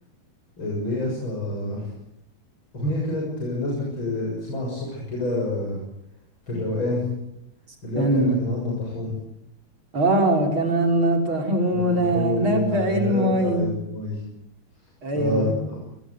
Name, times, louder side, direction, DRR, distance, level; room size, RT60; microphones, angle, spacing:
voice 1, 0.6-1.9 2.7-5.8 6.5-7.0 7.8-9.1 11.7-14.2 15.1-15.8, left 1 dB, 80° left, -2 dB, 7.8 m, -28 dB
voice 2, 8.0-8.4 9.9-13.7 15.0-15.6, right 1 dB, 85° right, 3 dB, 6.0 m, -22 dB
28.0 x 21.0 x 8.1 m, 0.79 s
omnidirectional pair, 2.2 m